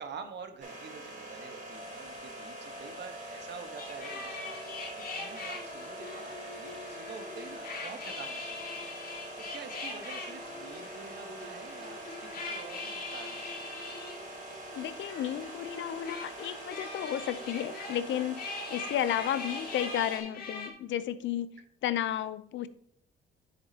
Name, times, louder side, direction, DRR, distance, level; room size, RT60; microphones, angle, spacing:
voice 1, 0.0-9.0 9.4-13.8, right 5 dB, 60° right, 7 dB, 1.3 m, -47 dB
sound 1, 0.6-20.2, right 2 dB, 40° right, 3.6 m, -44 dB
sound 2, 1.7-20.2, left 2 dB, 25° left, 2.4 m, -58 dB
sound 3, 3.8-20.7, left 3 dB, 50° left, 2.0 m, -42 dB
voice 2, 14.7-22.7, left 11 dB, 75° left, 14 dB, 0.6 m, -33 dB
10.0 x 6.7 x 2.9 m, 0.73 s
cardioid pair, 90°, 20 cm